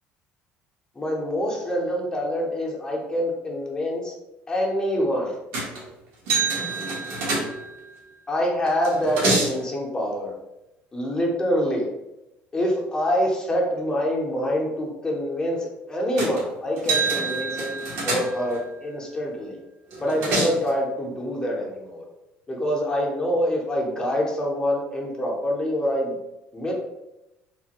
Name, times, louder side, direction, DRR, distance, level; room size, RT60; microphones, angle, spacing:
voice 1, 1.0-4.1 4.5-5.4 8.3-10.3 10.9-11.9 12.5-19.6 20.0-22.0 22.5-26.2 26.5-26.7, equal, 20° left, -2 dB, 0.7 m, -26 dB
sound 1, 5.5-5.9 6.3-7.9 8.7-9.6 16.2-16.4 16.8-18.6 19.9-20.7, right 3 dB, 75° right, 0.9 m, -26 dB
3.2 x 2.1 x 2.8 m, 0.93 s
cardioid pair, 130°, 4 cm